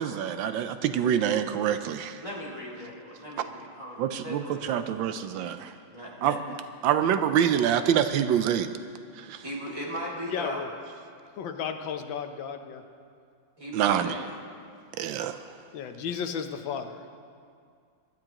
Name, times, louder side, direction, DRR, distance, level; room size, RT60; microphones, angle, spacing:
voice 1, 0.0-2.2 4.0-5.7 6.2-6.6 6.8-8.7 9.2-9.4 13.7-14.2 15.0-15.4, right 9 dB, 85° right, 10 dB, 1.3 m, -26 dB
voice 2, 2.2-5.0 5.9-6.4 9.4-10.6 13.6-14.3, equal, 15° right, -5 dB, 2.1 m, -38 dB
voice 3, 10.3-10.7 11.4-12.8 15.7-17.1, left 7 dB, 80° left, 7 dB, 1.5 m, -34 dB
21.5 x 12.0 x 3.0 m, 2.2 s
omnidirectional pair, 2.1 m